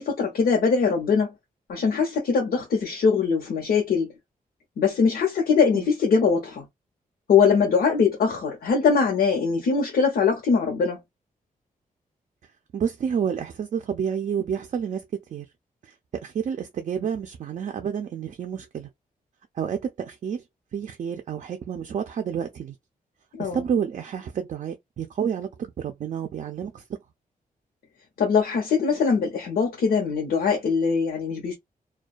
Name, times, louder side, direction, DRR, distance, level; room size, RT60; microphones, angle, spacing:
voice 1, 0.0-1.3 1.7-4.1 4.8-6.6 7.3-11.0 23.3-23.6 28.2-31.6, left 5 dB, 85° left, 0.9 m, -22 dB
voice 2, 12.7-15.5 15.8-18.9 19.6-20.4 20.7-22.7 23.4-26.8, right 7 dB, 55° right, 0.4 m, -29 dB
2.3 x 2.2 x 2.4 m
wide cardioid pair, 155°, 15 cm